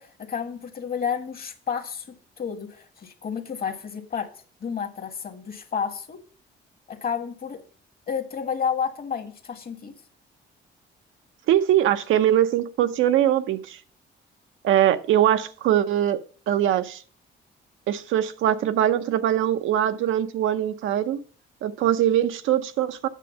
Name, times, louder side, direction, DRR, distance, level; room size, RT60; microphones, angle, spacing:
voice 1, 0.0-2.1 2.4-4.3 4.6-6.2 6.9-7.6 8.1-9.9, left 7 dB, 50° left, 8 dB, 1.6 m, -30 dB
voice 2, 11.5-13.8 14.6-16.2 16.5-17.0 17.9-21.2 21.6-23.1, right 11 dB, 80° right, 10 dB, 0.7 m, -22 dB
8.3 x 6.5 x 5.4 m, 0.42 s
cardioid pair, 90°, 20 cm